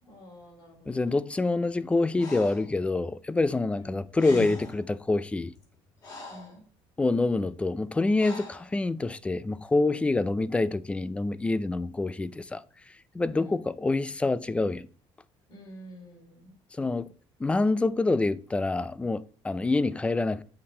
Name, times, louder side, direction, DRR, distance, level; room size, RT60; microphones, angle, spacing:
voice 1, 0.0-1.2 3.7-4.0 6.3-6.6 13.3-13.6 15.5-16.5, equal, 50° left, 3.5 m, -48 dB
voice 2, 0.9-5.5 7.0-14.9 16.7-17.1 17.4-20.4, left 3 dB, 10° left, 0.3 m, -26 dB
Breathing, 2.2-2.7 3.9-4.0 4.2-4.9 5.5-6.6 8.2-8.7, left 3 dB, 35° left, 2.0 m, -40 dB
8.3 x 5.7 x 4.2 m
cardioid pair, 145°, 11 cm